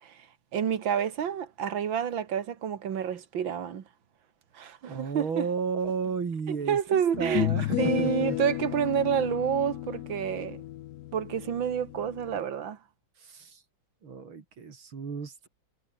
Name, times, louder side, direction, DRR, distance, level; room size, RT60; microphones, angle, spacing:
voice 1, 0.0-3.9 4.5-5.5 6.5-7.5 7.8-10.6 11.1-12.8, right 8 dB, 70° right, 2.4 m, -29 dB
voice 2, 4.8-8.4 13.2-13.6 14.0-15.5, right 5 dB, 90° right, 3.7 m, -33 dB
sound 1, 6.0-6.1 7.1-12.4, left 15 dB, 75° left, 0.9 m, -33 dB
omnidirectional pair, 2.2 m